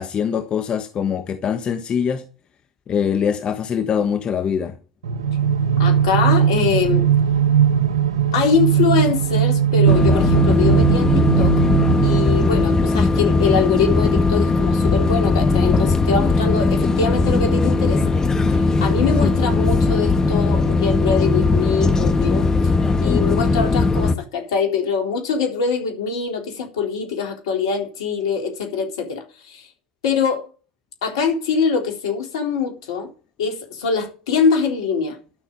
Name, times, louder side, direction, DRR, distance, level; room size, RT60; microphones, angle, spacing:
voice 1, 0.0-2.2 2.9-4.7 19.2-19.3 23.1-23.4, left 7 dB, 35° left, 1.3 m, -23 dB
sound 1, 5.0-12.9, right 9 dB, 80° right, 1.9 m, -19 dB
voice 2, 5.8-7.1 8.3-11.6 12.0-18.0 18.5-22.5 23.0-29.7 30.0-30.5 31.0-33.1 33.4-35.2, left 5 dB, 75° left, 3.8 m, -23 dB
sound 2, 9.9-24.2, left 3 dB, 20° left, 1.7 m, -18 dB
12.0 x 6.3 x 9.2 m
hypercardioid pair, 80°, 3 cm